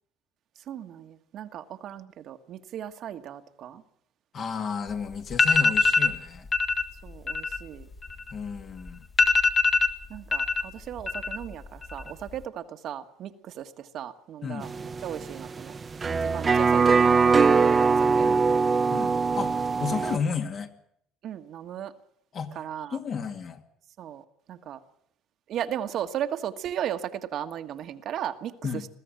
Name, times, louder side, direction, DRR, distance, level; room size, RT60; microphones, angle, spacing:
voice 1, 0.7-3.8 7.0-7.9 10.1-15.7 16.1-18.3 21.2-21.9 22.5-23.0 24.0-24.2 24.5-24.8 25.5-28.5, right 10 dB, 60° right, 1.5 m, -36 dB
voice 2, 4.3-6.5 8.3-9.1 12.0-12.1 14.4-14.7 18.2-18.4 18.9-20.7 22.3-22.6 22.9-23.6 28.6-28.9, left 6 dB, 45° left, 2.3 m, -32 dB
sound 1, 4.9-5.0 5.3-6.2 6.5-6.8 7.1-8.6 8.9-9.0 9.2-10.6 10.9-11.5 11.8-12.4, left 3 dB, 30° left, 1.8 m, -23 dB
sound 2, 14.6-20.2, right 5 dB, 30° right, 1.0 m, -22 dB
21.5 x 14.5 x 9.0 m
supercardioid pair, 95°, 0 cm